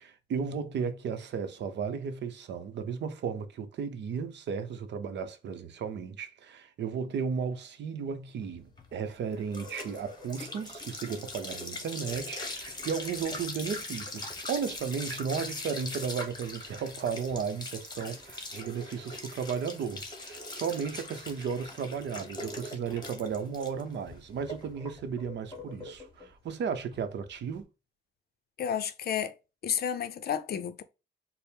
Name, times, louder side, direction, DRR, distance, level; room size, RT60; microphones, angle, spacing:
voice 1, 0.0-27.6, right 6 dB, 60° right, 0.7 m, -34 dB
sound 1, 8.5-27.6, left 2 dB, 20° left, 1.1 m, -41 dB
voice 2, 28.6-29.3 29.6-30.8, left 8 dB, 50° left, 0.5 m, -31 dB
4.2 x 2.0 x 3.4 m
cardioid pair, 90°, 20 cm